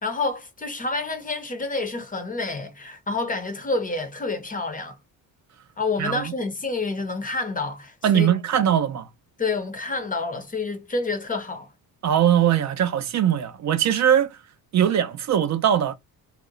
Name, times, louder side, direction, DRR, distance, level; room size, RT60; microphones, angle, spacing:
voice 1, 0.0-5.0 5.8-8.3 9.4-11.7, left 3 dB, 25° left, 0.5 m, -28 dB
voice 2, 8.0-9.1 12.0-14.3 14.7-15.9, right 10 dB, 50° right, 0.4 m, -21 dB
2.8 x 2.0 x 3.7 m
cardioid pair, 135°, 36 cm